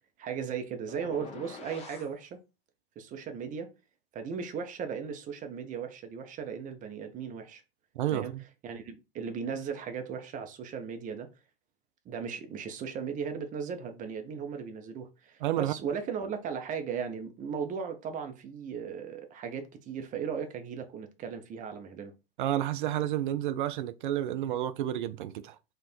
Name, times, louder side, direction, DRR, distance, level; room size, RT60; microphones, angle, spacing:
voice 1, 0.2-2.4 3.0-3.7 4.1-7.6 8.1-8.3 8.6-11.3 12.0-22.1, right 6 dB, 25° right, 0.8 m, -37 dB
sound 1, 0.9-2.1, left 5 dB, 20° left, 0.9 m, -45 dB
voice 2, 8.0-8.4 15.4-15.7 22.4-25.6, right 12 dB, 55° right, 0.5 m, -30 dB
4.4 x 2.4 x 4.4 m
figure-of-eight pair, 95°, 31 cm